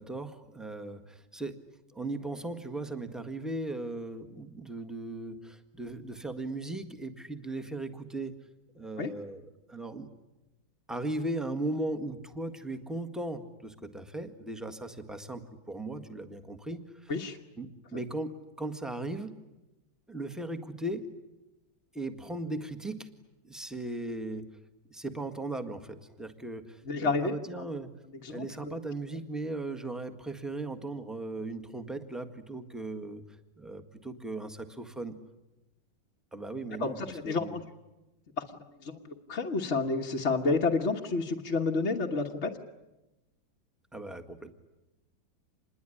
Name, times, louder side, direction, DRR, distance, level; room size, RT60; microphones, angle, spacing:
voice 1, 0.0-1.6 1.9-8.3 8.7-10.1 10.9-17.1 17.6-19.3 20.1-21.1 21.9-23.1 23.4-24.5 24.9-27.9 28.3-33.2 33.6-35.2 36.3-37.6 43.9-44.5, right 2 dB, ahead, 7 dB, 1.4 m, -37 dB
voice 2, 26.9-27.3 28.2-28.7 36.8-37.6 38.8-38.9 39.3-42.5, left 3 dB, 40° left, 1 dB, 1.5 m, -29 dB
27.0 x 21.0 x 10.0 m, 1.0 s
omnidirectional pair, 2.1 m